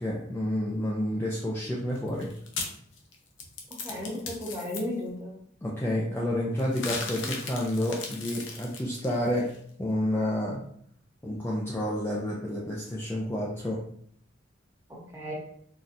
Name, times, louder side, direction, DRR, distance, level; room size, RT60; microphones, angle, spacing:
voice 1, 0.0-2.3 5.6-9.5 9.8-10.6 11.2-13.8, left 1 dB, 10° left, -5 dB, 0.4 m, -29 dB
sound 1, 2.0-4.8 6.6-9.6, left 4 dB, 75° left, 0.6 m, -37 dB
voice 2, 3.7-5.4 7.0-7.3 14.9-15.3, left 1 dB, 15° right, -5 dB, 0.9 m, -35 dB
4.0 x 2.3 x 2.5 m, 0.64 s
head